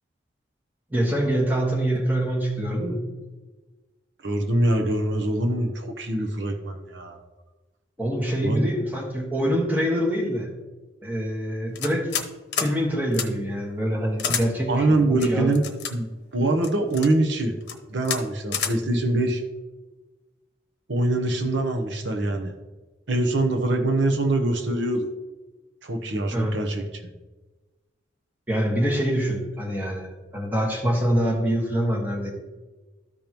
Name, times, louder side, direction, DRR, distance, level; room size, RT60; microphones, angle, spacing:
voice 1, 0.9-3.0 8.0-10.5 11.0-12.1 12.6-15.6 26.3-26.5 28.5-32.3, equal, 10° right, -2 dB, 1.4 m, -25 dB
voice 2, 4.2-7.2 8.4-8.6 14.7-15.6 15.9-16.1 16.3-17.5 17.9-19.4 20.9-22.5 23.1-25.1 25.8-26.8, right 2 dB, 75° right, 4 dB, 0.9 m, -24 dB
sound 1, 11.8-12.3 12.5-12.7 13.1-13.3 14.2-14.4 15.2-15.9 16.6-17.1 17.6-17.8 18.0-18.2 18.5-18.7, left 7 dB, 60° left, 0.9 m, -28 dB
13.5 x 5.2 x 3.0 m, 1.2 s
head